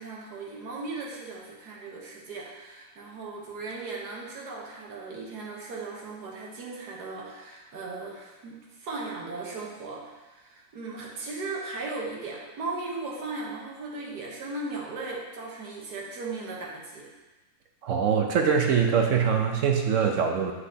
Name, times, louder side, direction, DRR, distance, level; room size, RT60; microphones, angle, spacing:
voice 1, 0.0-17.1, right 3 dB, 85° right, -3 dB, 1.7 m, -37 dB
voice 2, 17.8-20.5, right 6 dB, 60° right, 3 dB, 0.9 m, -23 dB
7.4 x 6.5 x 2.8 m, 1.2 s
omnidirectional pair, 1.7 m